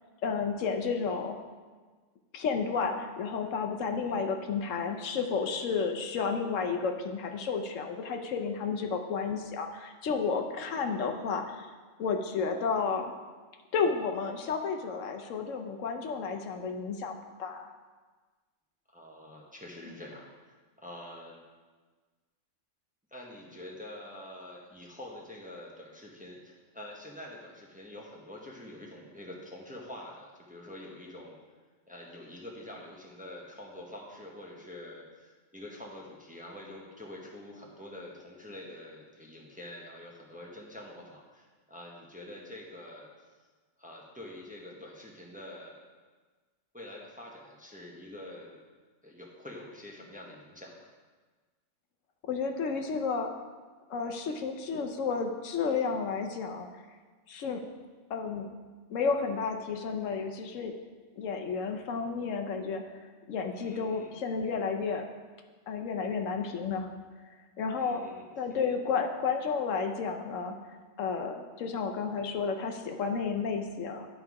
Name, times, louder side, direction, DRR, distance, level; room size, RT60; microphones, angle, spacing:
voice 1, 0.2-1.4 2.3-11.7 12.0-13.2 13.7-17.7 52.2-53.3 53.9-56.7 57.3-57.6 58.1-58.5 58.9-60.7 61.2-65.1 65.7-66.9 67.3-68.0 68.4-70.5 71.0-74.1, left 5 dB, 80° left, 4 dB, 1.1 m, -32 dB
voice 2, 18.9-20.3 20.8-21.4 23.1-31.4 31.9-43.1 43.8-45.8 46.7-48.6 49.0-50.9 63.5-64.2 67.8-68.6, left 1 dB, 5° right, -2 dB, 0.9 m, -46 dB
11.5 x 3.9 x 4.7 m, 1.4 s
omnidirectional pair, 1.3 m